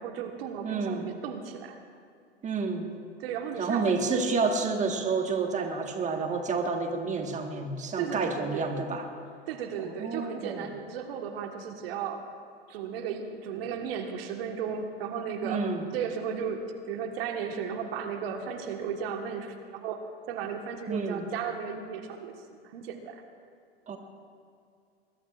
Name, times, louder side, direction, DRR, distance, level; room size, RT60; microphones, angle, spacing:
voice 1, 0.0-1.8 3.2-4.2 8.0-8.7 9.5-12.2 12.7-20.0 20.3-22.3 22.6-23.2, right 7 dB, 65° right, 4 dB, 1.6 m, -35 dB
voice 2, 0.6-1.0 2.4-2.9 3.6-9.1 9.8-10.6 15.4-15.8 20.9-21.2 23.9-24.0, right 4 dB, 20° right, 4 dB, 1.6 m, -29 dB
21.5 x 21.5 x 2.5 m, 2.4 s
hypercardioid pair, 100°, 33 cm